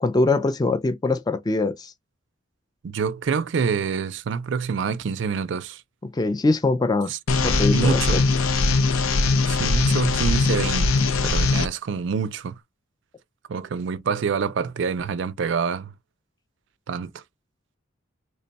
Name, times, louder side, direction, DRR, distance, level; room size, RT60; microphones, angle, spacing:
voice 1, 0.0-1.9 6.0-7.1 7.4-8.2, left 3 dB, 20° left, 0.3 m, -23 dB
voice 2, 2.8-5.8 7.1-7.2 7.7-8.2 9.5-12.6 13.5-15.9 16.9-17.2, right 6 dB, 60° right, 0.4 m, -26 dB
sound 1, 7.3-11.7, left 3 dB, 80° left, 0.5 m, -21 dB
3.2 x 2.2 x 3.9 m
head